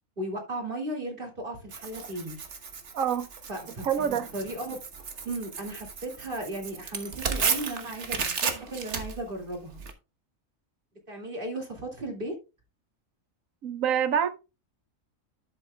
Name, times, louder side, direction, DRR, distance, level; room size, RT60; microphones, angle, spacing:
voice 1, 0.2-2.4 3.5-4.8 5.2-9.8 11.1-12.4, right 1 dB, 40° right, 2.7 m, -36 dB
Tearing, 1.7-9.9, right 5 dB, 55° right, 1.5 m, -34 dB
voice 2, 2.9-3.3 3.8-4.3 13.6-14.3, right 8 dB, 70° right, 1.3 m, -26 dB
11.5 x 7.7 x 2.3 m
omnidirectional pair, 1.4 m